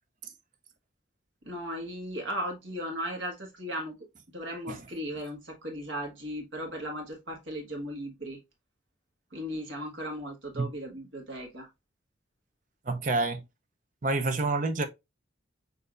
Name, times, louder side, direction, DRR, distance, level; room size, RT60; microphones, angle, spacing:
voice 1, 1.4-4.0 4.3-8.4 9.3-11.7, equal, 75° right, 1.4 m, -36 dB
voice 2, 12.8-13.4 14.0-14.8, right 3 dB, 40° right, 0.6 m, -28 dB
6.5 x 2.6 x 2.4 m
head